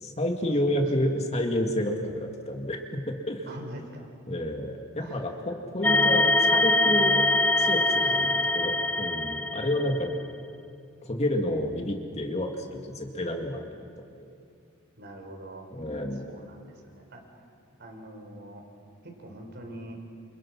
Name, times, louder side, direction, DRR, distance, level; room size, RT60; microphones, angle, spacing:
voice 1, 0.0-3.5 4.3-7.2 7.6-8.1 8.5-10.2 11.0-13.7 14.0-14.3 15.7-16.3, left 1 dB, 30° left, 3 dB, 2.2 m, -29 dB
voice 2, 3.5-4.1 5.0-5.5 8.0-8.6 15.0-15.7 16.2-17.2 17.8-18.6 19.0-20.0, right 1 dB, 55° right, 3 dB, 4.8 m, -44 dB
sound 1, 5.8-10.1, left 2 dB, 10° left, 0.6 m, -23 dB
29.0 x 28.5 x 6.1 m, 2.4 s
head